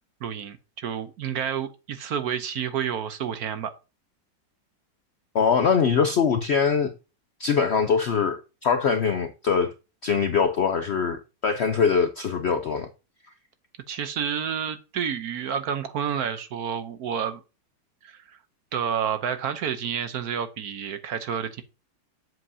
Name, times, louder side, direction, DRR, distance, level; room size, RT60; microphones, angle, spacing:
voice 1, 0.2-3.7 13.9-17.4 18.0-18.4 18.7-21.6, right 8 dB, 65° right, 1.2 m, -29 dB
voice 2, 5.3-6.9 7.4-9.7 10.0-12.9, left 6 dB, 80° left, 0.5 m, -23 dB
7.7 x 7.6 x 2.7 m
omnidirectional pair, 1.9 m